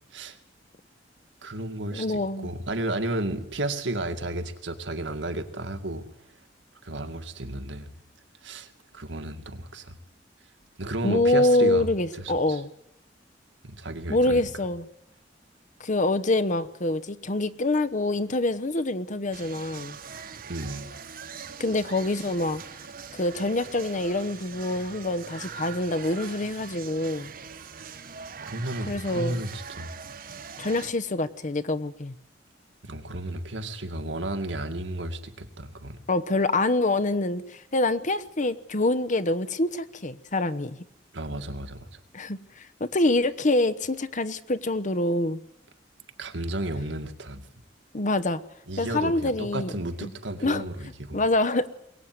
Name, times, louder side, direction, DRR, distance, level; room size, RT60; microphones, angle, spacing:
voice 1, 1.4-6.1 6.8-7.9 8.4-10.0 10.8-11.9 12.1-12.6 13.6-14.4 20.5-20.9 28.4-29.9 32.8-36.0 41.1-42.0 46.2-47.5 48.7-51.2, right 1 dB, 80° right, 7 dB, 2.2 m, -33 dB
voice 2, 1.9-2.5 11.0-12.7 14.1-14.9 15.8-20.0 21.6-22.6 23.2-27.3 28.9-29.4 30.6-32.1 36.1-40.8 42.1-45.4 47.9-48.4 48.8-49.7 50.0-50.1 50.4-50.6 51.1-51.7, left 2 dB, 45° left, 15 dB, 1.0 m, -25 dB
sound 1, 19.3-30.9, right 6 dB, 50° right, 1.4 m, -42 dB
22.5 x 18.0 x 9.6 m, 0.81 s
head